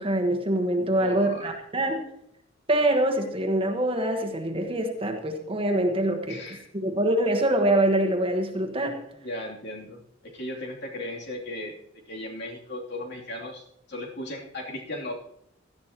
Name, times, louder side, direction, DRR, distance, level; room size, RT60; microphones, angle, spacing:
voice 1, 0.0-2.0 2.7-6.4 6.7-9.0, right 1 dB, 30° right, 3 dB, 1.3 m, -24 dB
voice 2, 1.0-1.5 6.3-6.7 9.2-11.8 12.1-15.1, left 1 dB, 60° left, -1 dB, 3.0 m, -36 dB
17.5 x 13.0 x 2.9 m, 0.74 s
head